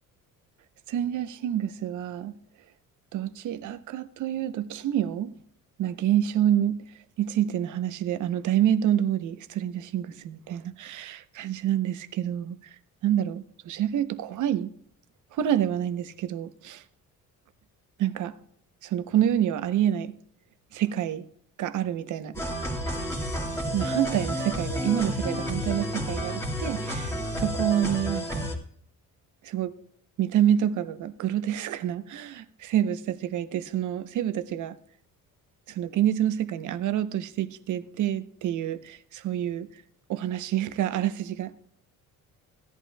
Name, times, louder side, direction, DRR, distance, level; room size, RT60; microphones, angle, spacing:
voice 1, 0.9-2.3 3.1-5.4 5.8-6.8 7.2-12.8 13.0-14.7 15.3-16.8 18.0-18.3 18.8-20.1 20.7-21.3 21.6-22.4 23.7-28.5 29.4-29.7 30.2-34.8 35.7-39.7 40.1-41.6, right 11 dB, 65° right, 0.8 m, -27 dB
sound 1, 22.3-28.5, equal, 10° left, 1.9 m, -30 dB
16.5 x 11.0 x 2.3 m
cardioid pair, 150°, 33 cm